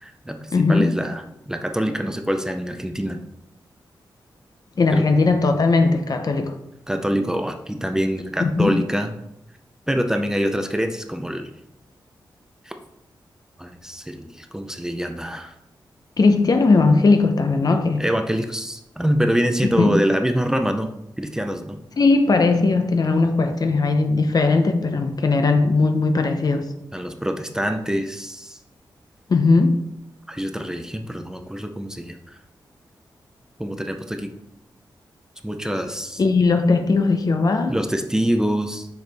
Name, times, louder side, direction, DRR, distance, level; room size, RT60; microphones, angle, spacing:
voice 1, 0.0-3.2 4.9-5.1 6.9-9.1 9.9-11.5 12.6-12.7 13.6-15.5 18.0-20.9 21.2-21.8 26.9-28.6 30.3-32.4 33.6-34.3 35.4-36.2 37.7-38.9, equal, 5° right, 0.6 m, -25 dB
voice 2, 0.5-0.9 4.8-6.6 8.4-8.7 16.2-18.0 19.7-19.9 22.0-26.7 29.3-29.8 36.2-37.8, left 3 dB, 50° left, 0.7 m, -18 dB
6.5 x 4.8 x 3.5 m
cardioid pair, 75°, 8 cm